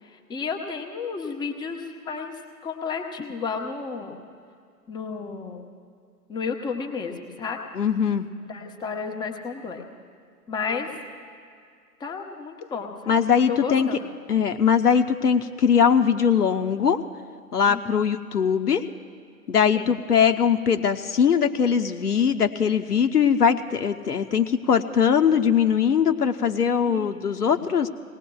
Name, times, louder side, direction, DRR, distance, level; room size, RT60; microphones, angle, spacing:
voice 1, 0.0-4.2 4.9-5.6 6.3-7.6 8.5-9.9 10.5-10.9 12.0-13.2 13.5-14.0 17.7-18.1 19.7-19.9 26.9-27.2 27.5-27.7, left 5 dB, 10° left, 3 dB, 1.0 m, -32 dB
voice 2, 7.8-8.3 13.1-13.9 14.3-17.0 17.5-18.9 19.5-27.9, left 7 dB, 75° left, 7 dB, 1.0 m, -21 dB
27.5 x 19.0 x 2.3 m, 2.2 s
figure-of-eight pair, 120°, 47 cm